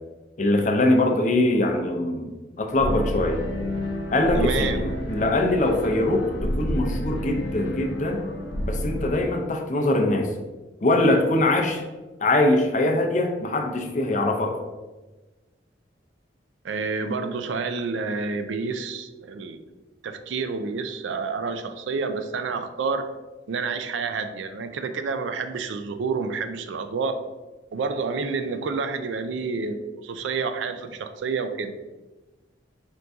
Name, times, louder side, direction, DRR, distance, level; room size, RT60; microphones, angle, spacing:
voice 1, 0.4-2.3 2.6-3.4 4.1-8.3 8.6-10.3 10.8-11.8 12.2-14.6, left 2 dB, 40° left, 2 dB, 0.5 m, -22 dB
sound 1, 2.7-9.1, equal, 85° left, 0.6 m, -30 dB
voice 2, 4.3-4.9 16.6-19.6 20.0-23.2 23.5-27.2 27.7-31.8, right 4 dB, 80° right, 9 dB, 0.4 m, -29 dB
4.4 x 2.6 x 3.4 m, 1.2 s
head